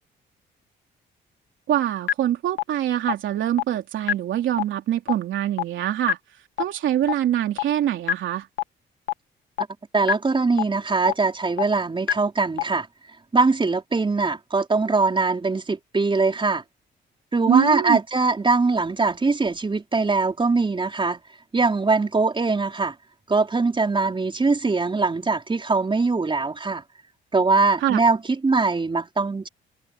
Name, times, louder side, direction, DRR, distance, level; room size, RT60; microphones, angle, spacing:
voice 1, 1.7-6.2 6.6-8.5 17.5-18.0 27.8-28.0, right 11 dB, 75° right, 3.2 m, -24 dB
sound 1, 2.1-2.2 2.6-2.7 3.1-3.2 3.6-3.7 4.1-4.2 4.6-4.7 5.1-5.2 5.6-5.7 6.1-6.2 6.6-6.7 7.1-7.2 7.6-7.7 8.1-8.2 8.6-8.7 9.1-9.2 9.6-9.7 10.1-10.2 10.6-10.7 11.1-11.2 11.6-11.7 12.1-12.2 12.6-12.7, left 12 dB, 85° left, 2.3 m, -22 dB
voice 2, 9.9-12.9 13.3-16.6 17.3-21.2 21.5-22.9 23.3-26.8 27.3-28.2 28.4-29.5, right 3 dB, 25° right, 4.7 m, -22 dB
cardioid pair, 90°, 20 cm